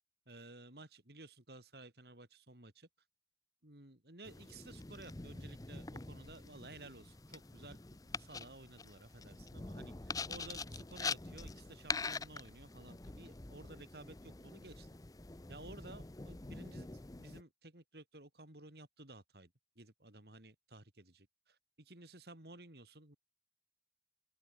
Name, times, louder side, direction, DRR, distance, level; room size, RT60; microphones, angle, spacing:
voice 1, 0.3-2.9 3.6-14.9 15.5-16.9 17.1-23.2, right 2 dB, 60° right, 3.4 m, -55 dB
sound 1, 4.2-17.4, left 4 dB, 20° left, 0.7 m, -45 dB
open air
head